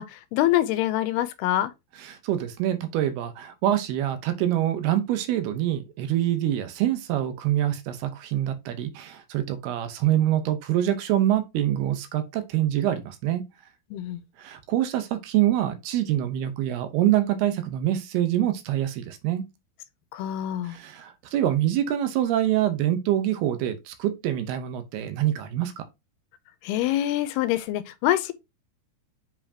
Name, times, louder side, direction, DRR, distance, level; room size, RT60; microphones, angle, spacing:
voice 1, 0.0-1.7 13.9-14.2 20.1-20.8 26.6-28.3, left 13 dB, 85° left, 2.6 m, -25 dB
voice 2, 2.0-13.4 14.4-19.4 20.6-25.8, right 12 dB, 80° right, 2.8 m, -25 dB
7.7 x 4.8 x 2.8 m
omnidirectional pair, 4.6 m